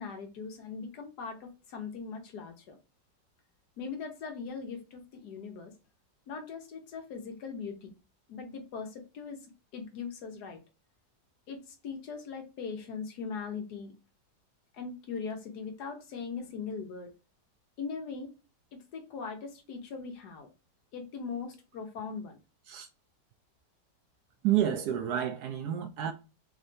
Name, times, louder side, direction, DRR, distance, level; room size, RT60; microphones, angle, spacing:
voice 1, 0.0-2.8 3.8-5.7 6.3-7.9 8.3-10.6 11.5-13.9 14.7-17.1 17.8-18.3 18.7-20.5 20.9-22.4, left 5 dB, 65° left, 1.3 m, -40 dB
voice 2, 24.4-26.1, right 11 dB, 70° right, 1.0 m, -29 dB
3.7 x 3.1 x 2.6 m
omnidirectional pair, 1.9 m